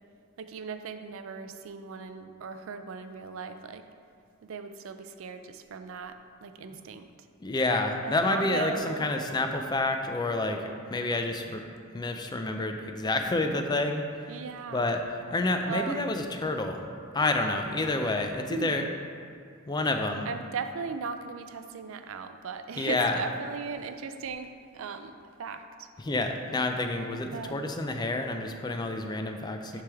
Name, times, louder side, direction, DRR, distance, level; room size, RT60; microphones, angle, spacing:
voice 1, 0.4-3.8 4.4-7.1 8.0-9.1 14.3-14.9 15.7-16.0 18.5-18.9 20.2-25.9 27.3-27.7 29.7-29.8, right 5 dB, 70° right, 8 dB, 0.4 m, -38 dB
voice 2, 7.4-11.7 11.9-14.3 14.7-15.0 15.3-16.9 17.1-18.8 19.7-20.3 22.8-23.2 26.0-29.8, left 2 dB, 20° left, 5 dB, 0.4 m, -29 dB
9.8 x 3.4 x 3.4 m, 2.2 s
head